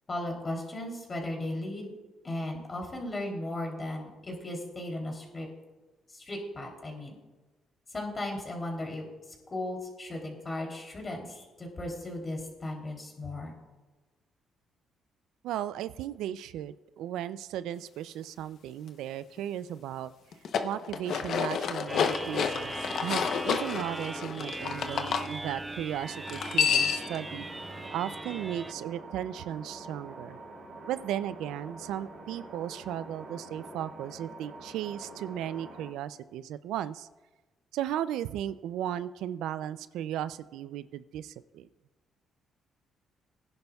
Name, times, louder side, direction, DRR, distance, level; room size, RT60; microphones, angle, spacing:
voice 1, 0.1-1.9 2.2-5.5 6.1-7.2 7.9-9.1 9.5-13.5, left 1 dB, 30° left, 1 dB, 3.1 m, -36 dB
voice 2, 15.4-20.1 20.6-22.7 23.0-30.4 30.8-37.1 37.7-41.7, right 11 dB, 90° right, 15 dB, 0.3 m, -36 dB
sound 1, 20.3-25.3 26.3-27.2, left 7 dB, 65° left, 0.8 m, -29 dB
sound 2, 21.9-28.7, right 2 dB, 15° right, 0.4 m, -39 dB
sound 3, 26.0-35.9, right 2 dB, 70° right, 4.5 m, -46 dB
20.5 x 10.5 x 2.3 m, 1.2 s
cardioid pair, 90°, 0 cm